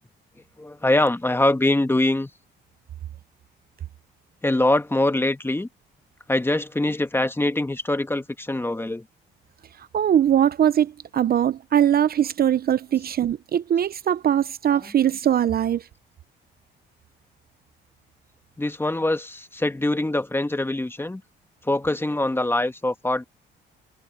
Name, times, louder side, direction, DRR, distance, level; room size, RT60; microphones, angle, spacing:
voice 1, 0.6-2.3 4.4-5.7 6.3-9.0 14.7-15.0 18.6-21.2 21.6-23.2, left 1 dB, 10° left, 1.4 m, -23 dB
voice 2, 9.9-15.9, right 10 dB, 50° right, 0.6 m, -21 dB
cardioid pair, 90°, 20 cm